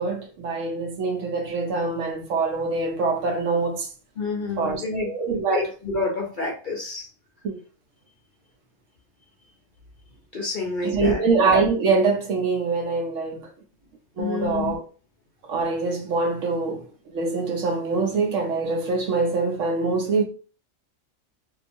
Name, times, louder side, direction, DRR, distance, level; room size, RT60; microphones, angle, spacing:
voice 1, 0.0-3.9 4.6-5.7 7.4-7.6 10.8-13.5 14.2-14.8 15.4-20.2, right 4 dB, 70° right, 1.0 m, -24 dB
voice 2, 4.2-5.1 5.5-7.1 10.3-11.2 14.2-14.7, left 3 dB, 50° left, 0.6 m, -28 dB
2.8 x 2.3 x 2.5 m
omnidirectional pair, 1.4 m